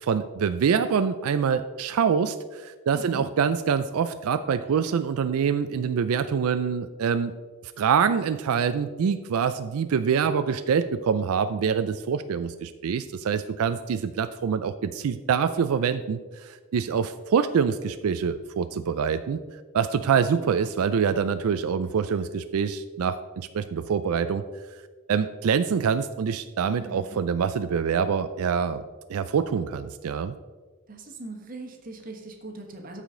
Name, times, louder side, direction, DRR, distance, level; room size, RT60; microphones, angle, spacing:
voice 1, 0.0-7.3 7.8-19.4 19.7-24.4 25.1-28.8 29.1-30.3, right 6 dB, 90° right, 11 dB, 0.4 m, -25 dB
voice 2, 2.9-3.3 26.8-27.2 30.9-33.0, right 2 dB, 40° right, 2 dB, 1.2 m, -41 dB
13.5 x 5.0 x 3.8 m, 1.4 s
head